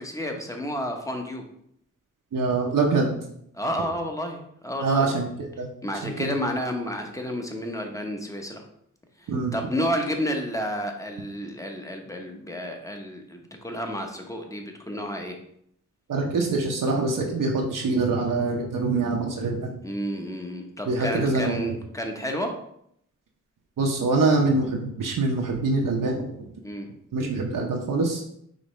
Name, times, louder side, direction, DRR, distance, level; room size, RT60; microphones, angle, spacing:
voice 1, 0.0-1.4 3.5-5.1 5.8-8.6 9.2-15.4 19.8-22.6 26.6-26.9, equal, 10° left, 3 dB, 0.9 m, -31 dB
voice 2, 2.3-3.1 4.8-5.3 5.6-5.7 6.0-6.4 9.3-9.6 16.1-19.8 20.9-21.6 23.8-26.3 27.1-28.2, right 3 dB, 80° right, 0 dB, 0.8 m, -24 dB
5.2 x 3.1 x 3.1 m, 0.72 s
cardioid pair, 55°, 32 cm